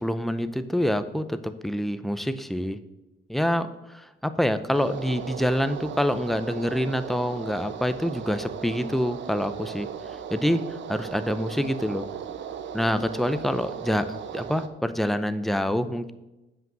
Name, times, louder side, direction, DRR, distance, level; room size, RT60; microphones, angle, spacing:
voice 1, 0.0-2.8 3.3-3.7 3.9-9.9 10.3-10.6 10.9-12.0 12.7-16.1, equal, ahead, 11 dB, 0.6 m, -26 dB
sound 1, 4.7-14.7, right 8 dB, 70° right, 0.8 m, -37 dB
7.8 x 5.5 x 7.5 m, 1.0 s
cardioid pair, 90°, 20 cm